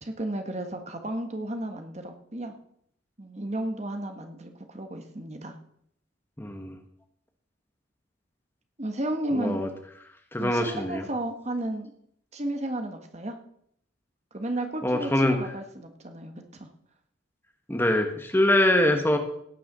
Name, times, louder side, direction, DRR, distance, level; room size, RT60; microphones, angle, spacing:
voice 1, 0.0-2.5 3.2-5.5 8.8-9.6 10.4-11.9 12.3-13.4 14.3-16.7, right 1 dB, 35° right, 6 dB, 1.5 m, -33 dB
voice 2, 6.4-6.8 9.3-9.7 10.3-11.0 14.8-15.4 17.7-19.2, left 1 dB, 10° left, 4 dB, 1.4 m, -23 dB
16.5 x 6.8 x 6.9 m, 0.69 s
head